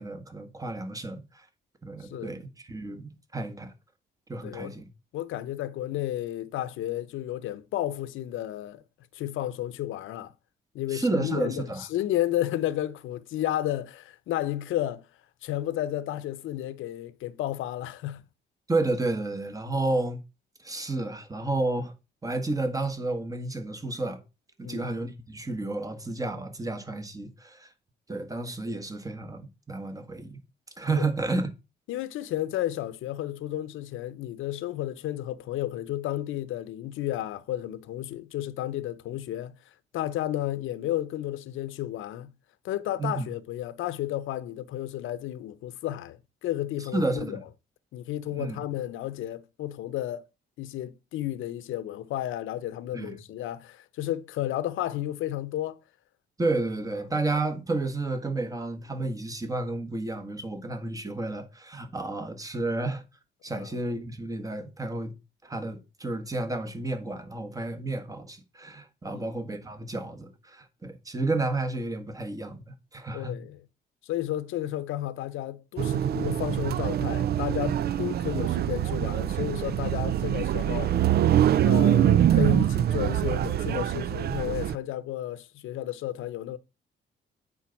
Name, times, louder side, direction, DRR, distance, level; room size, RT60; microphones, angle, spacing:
voice 1, 0.0-1.5 1.8-3.7 4.3-4.9 10.9-11.9 18.7-20.2 20.6-21.9 22.2-24.2 24.6-27.7 28.1-30.4 30.8-31.5 43.0-43.3 46.9-47.4 48.4-48.7 52.9-53.2 56.4-63.0 63.4-65.1 65.4-72.6 72.9-73.3, right 2 dB, 15° right, 1.6 m, -31 dB
voice 2, 2.0-2.3 4.4-4.8 5.1-8.8 9.1-10.3 10.7-15.0 15.4-18.2 24.6-24.9 30.9-31.1 31.9-39.5 39.9-42.3 42.6-47.4 47.9-50.2 50.6-55.8 63.5-63.7 69.1-69.3 73.1-73.6 74.0-80.9 81.6-86.6, left 13 dB, 85° left, 0.8 m, -32 dB
sound 1, 75.8-84.8, right 11 dB, 55° right, 0.4 m, -24 dB
8.8 x 4.1 x 5.9 m
cardioid pair, 90°, 20 cm